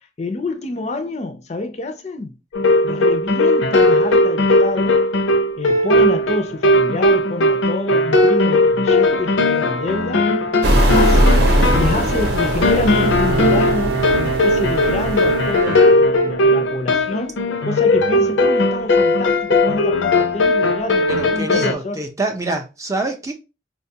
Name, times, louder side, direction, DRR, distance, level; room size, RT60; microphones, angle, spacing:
voice 1, 0.2-2.4 2.8-5.2 5.6-10.3 10.9-22.0, left 2 dB, 35° left, 0.4 m, -27 dB
sound 1, 2.5-21.7, left 2 dB, 85° left, 0.6 m, -17 dB
sound 2, 10.6-15.6, right 1 dB, 60° right, 0.7 m, -19 dB
Bowed string instrument, 12.2-16.6, right 6 dB, 75° right, 0.3 m, -26 dB
voice 2, 21.1-23.3, right 2 dB, 15° right, 0.5 m, -25 dB
4.4 x 2.2 x 2.7 m
head